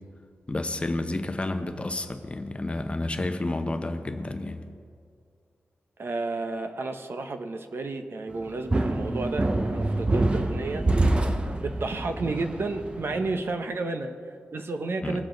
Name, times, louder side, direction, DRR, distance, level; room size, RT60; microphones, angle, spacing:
voice 1, 0.5-4.7 15.0-15.2, left 2 dB, 25° left, 6 dB, 0.7 m, -30 dB
voice 2, 6.0-10.8 11.6-15.3, right 3 dB, 50° right, 7 dB, 0.8 m, -32 dB
sound 1, 8.4-13.3, right 2 dB, 20° right, 0.6 m, -26 dB
21.0 x 7.4 x 3.9 m, 2.2 s
wide cardioid pair, 145°, 5 cm